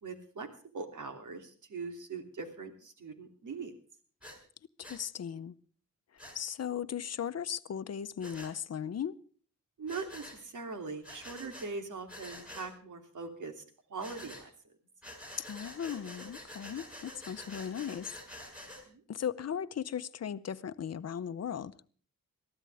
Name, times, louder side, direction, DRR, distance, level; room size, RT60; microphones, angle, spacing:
voice 1, 0.0-0.5 0.7-3.7 9.8-13.6 13.9-14.5 18.9-19.0, right 4 dB, 65° right, 3.0 m, -41 dB
Breathing, 4.2-4.4 4.8-5.0 6.2-6.4 8.2-8.5 9.9-10.4 11.0-11.7 12.1-12.7 14.0-14.4 15.0-18.8, left 1 dB, 5° right, 6.5 m, -47 dB
voice 2, 4.8-5.6 6.3-9.2 15.4-18.2 19.1-21.8, left 8 dB, 50° left, 0.8 m, -37 dB
21.5 x 14.0 x 3.5 m
wide cardioid pair, 110°, 33 cm